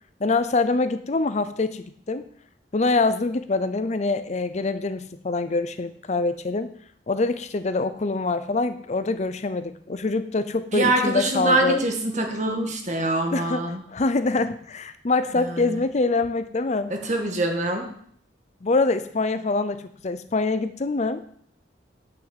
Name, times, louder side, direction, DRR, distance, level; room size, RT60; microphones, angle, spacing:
voice 1, 0.2-2.2 2.7-6.7 7.1-11.8 13.3-13.6 13.9-16.9 18.6-19.8 20.0-21.2, left 3 dB, 40° left, 12 dB, 0.6 m, -24 dB
voice 2, 10.7-13.8 15.4-15.8 16.9-17.9, right 2 dB, 40° right, 4 dB, 1.9 m, -24 dB
9.1 x 6.0 x 8.0 m, 0.62 s
head